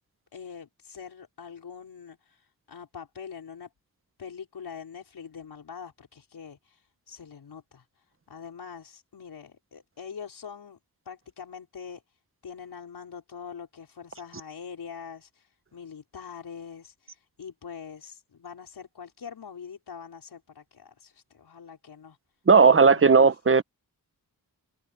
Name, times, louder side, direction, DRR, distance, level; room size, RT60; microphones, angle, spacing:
voice 1, 0.3-3.7 4.2-10.8 11.1-22.2 22.6-23.4, left 6 dB, 90° left, 5.4 m, -44 dB
voice 2, 22.5-23.6, right 5 dB, 35° right, 1.0 m, -16 dB
cardioid pair, 60°, 38 cm